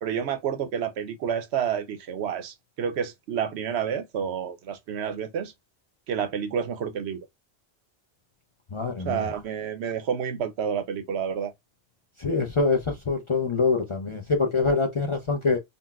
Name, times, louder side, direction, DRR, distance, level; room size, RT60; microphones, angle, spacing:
voice 1, 0.0-5.5 6.1-7.2 9.0-11.5, right 8 dB, 80° right, 0.9 m, -29 dB
voice 2, 8.7-9.3 12.2-15.6, left 4 dB, 40° left, 0.4 m, -25 dB
3.8 x 2.1 x 2.3 m
omnidirectional pair, 1.1 m